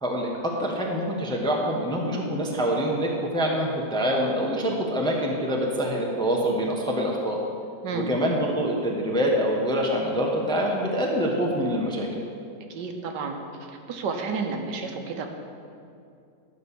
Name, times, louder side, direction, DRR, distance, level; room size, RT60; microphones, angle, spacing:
voice 1, 0.0-7.4 7.9-12.1, equal, 5° left, -1 dB, 0.8 m, -25 dB
voice 2, 12.7-13.4 13.7-15.3, right 4 dB, 80° right, 4 dB, 1.5 m, -31 dB
11.0 x 5.2 x 6.9 m, 2.5 s
omnidirectional pair, 1.8 m